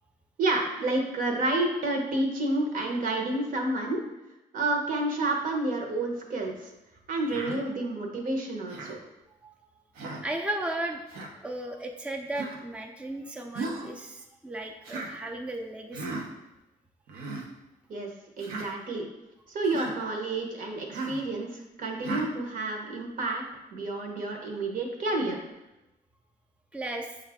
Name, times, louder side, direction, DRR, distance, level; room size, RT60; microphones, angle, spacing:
voice 1, 0.4-4.0 4.5-6.7 7.1-9.0 17.9-18.1 18.4-19.1 19.5-23.4 23.7-25.4, right 2 dB, 65° right, 2 dB, 0.9 m, -29 dB
Human voice, 7.3-7.6 8.7-9.0 10.0-10.3 11.1-11.3 12.3-12.6 13.5-13.9 14.8-15.1 15.9-16.3 17.1-17.4 18.4-18.7 19.6-19.9 20.9-21.2 22.0-22.3, right 3 dB, 90° right, 0.7 m, -35 dB
voice 2, 10.2-11.0 11.4-16.1 26.7-27.2, right 1 dB, 5° right, 2 dB, 0.4 m, -35 dB
5.6 x 2.4 x 3.4 m, 0.96 s
cardioid pair, 70°, 15 cm